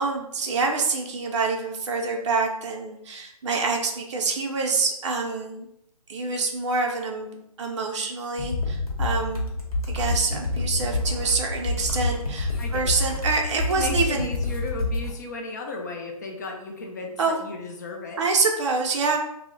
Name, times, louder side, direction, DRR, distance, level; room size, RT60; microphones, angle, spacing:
voice 1, 0.0-5.7 6.1-7.3 7.6-9.5 9.9-14.3 17.2-17.4 18.2-19.2, right 4 dB, 50° right, 1 dB, 0.5 m, -26 dB
sound 1, 8.4-15.1, left 2 dB, 65° left, 0.9 m, -28 dB
voice 2, 12.6-13.2 13.7-18.2, left 2 dB, 30° left, 1 dB, 0.4 m, -35 dB
2.1 x 2.0 x 3.6 m, 0.80 s
figure-of-eight pair, 150°, 20 cm